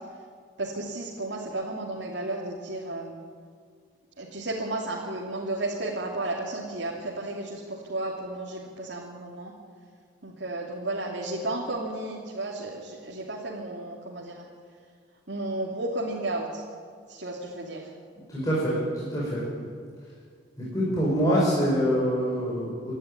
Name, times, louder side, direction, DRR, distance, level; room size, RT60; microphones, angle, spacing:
voice 1, 0.6-3.2 4.2-9.5 10.2-14.5 15.3-16.6 17.1-17.9, right 2 dB, 75° right, -3 dB, 3.0 m, -33 dB
voice 2, 18.3-19.5 20.6-22.9, equal, 20° left, -7 dB, 5.3 m, -25 dB
27.5 x 12.5 x 9.9 m, 2.1 s
head